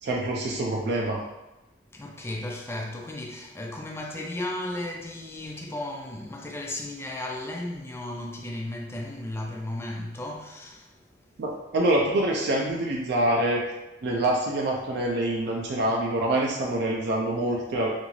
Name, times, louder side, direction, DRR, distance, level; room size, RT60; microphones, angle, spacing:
voice 1, 0.0-1.2 11.4-13.6 14.0-17.9, right 1 dB, 60° right, 0.4 m, -25 dB
voice 2, 1.9-10.9, left 1 dB, 15° left, 0.3 m, -35 dB
2.6 x 2.3 x 3.0 m
head